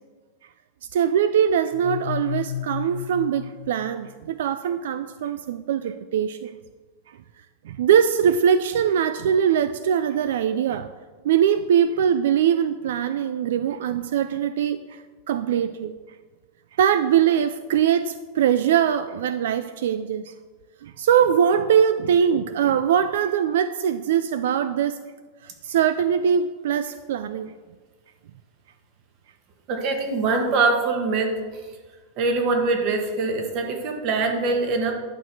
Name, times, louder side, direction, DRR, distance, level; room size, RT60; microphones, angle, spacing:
voice 1, 0.9-6.5 7.6-10.9 11.2-15.0 15.3-15.9 16.8-20.3 20.8-25.0 25.4-27.5, right 8 dB, 75° right, 11 dB, 0.4 m, -22 dB
sound 1, 1.7-4.5, left 10 dB, 70° left, 0.4 m, -33 dB
voice 2, 29.7-31.3 32.2-34.9, right 3 dB, 35° right, 3 dB, 1.4 m, -23 dB
10.5 x 5.9 x 4.6 m, 1.4 s
supercardioid pair, 170°, 0 cm